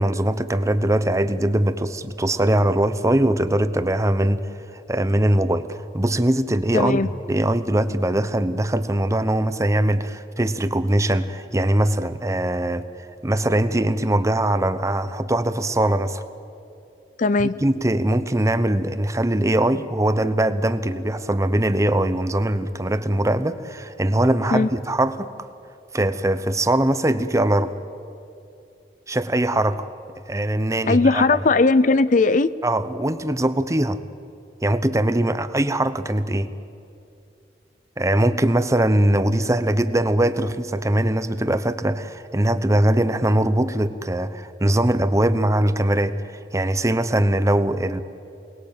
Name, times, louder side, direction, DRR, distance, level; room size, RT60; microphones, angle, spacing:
voice 1, 0.0-12.8 13.2-16.2 17.4-25.5 25.9-27.7 29.1-29.9 30.3-31.3 32.6-34.0 34.6-36.5 38.0-46.2 46.5-48.0, right 1 dB, 15° right, 12 dB, 0.9 m, -21 dB
voice 2, 6.7-7.1 17.2-17.5 24.5-24.7 30.9-32.5, left 3 dB, 45° left, 16 dB, 0.6 m, -18 dB
28.5 x 20.5 x 8.8 m, 2.6 s
head